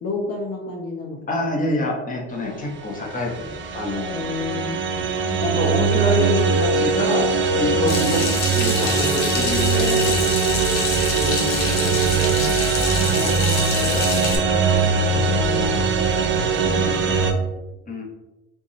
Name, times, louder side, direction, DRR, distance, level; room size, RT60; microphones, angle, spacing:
voice 1, 0.0-1.7 4.1-5.4 7.8-8.1 11.1-14.1 16.7-17.5, left 3 dB, 50° left, -2 dB, 0.9 m, -32 dB
voice 2, 1.3-4.4 5.4-10.3 17.9-18.0, left 2 dB, 25° left, -1 dB, 1.2 m, -26 dB
sound 1, 3.0-17.3, right 5 dB, 40° right, 0.6 m, -21 dB
Water tap faucet / Sink (filling or washing), 7.9-14.4, left 4 dB, 85° left, 1.0 m, -27 dB
3.4 x 2.6 x 4.2 m, 1.0 s
supercardioid pair, 95°, 30 cm